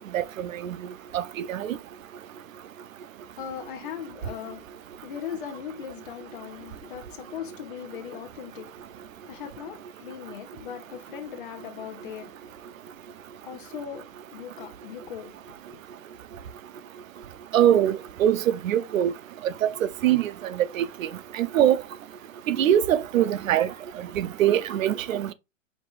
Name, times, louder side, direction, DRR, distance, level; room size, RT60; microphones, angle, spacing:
voice 1, 0.1-0.8 1.1-1.8 17.5-19.1 19.6-19.7 20.0-21.1 21.4-21.8 22.5-23.7 24.2-25.3, right 11 dB, 85° right, 0.6 m, -23 dB
voice 2, 3.4-4.6 5.0-12.6 13.4-14.0 14.3-15.3 15.7-15.8, left 9 dB, 40° left, 0.8 m, -39 dB
4.8 x 2.5 x 3.8 m
hypercardioid pair, 170°, 39 cm